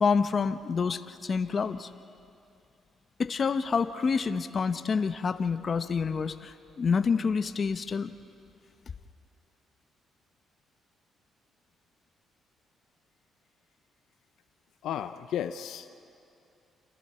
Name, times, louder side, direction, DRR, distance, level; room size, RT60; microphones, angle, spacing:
voice 1, 0.0-1.9 3.2-8.1, left 5 dB, 45° left, 10 dB, 1.0 m, -28 dB
voice 2, 14.8-15.9, left 10 dB, 80° left, 9 dB, 0.7 m, -34 dB
28.5 x 27.5 x 4.4 m, 2.6 s
cardioid pair, 90°, 0 cm